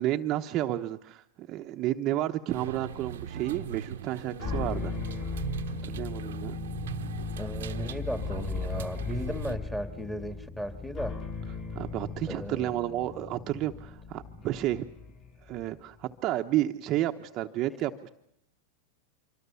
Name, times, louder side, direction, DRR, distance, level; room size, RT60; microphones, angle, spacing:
voice 1, 0.0-5.0 5.8-6.6 11.7-14.8 15.4-18.1, right 13 dB, 40° right, 5 dB, 1.0 m, -31 dB
sound 1, 2.5-9.6, right 9 dB, 85° right, 1.1 m, -40 dB
sound 2, 4.4-15.8, left 4 dB, 40° left, 6.7 m, -37 dB
voice 2, 7.4-11.2 12.3-12.7, equal, 5° left, 8 dB, 2.2 m, -35 dB
25.5 x 24.0 x 7.1 m, 0.74 s
hypercardioid pair, 125°, 0 cm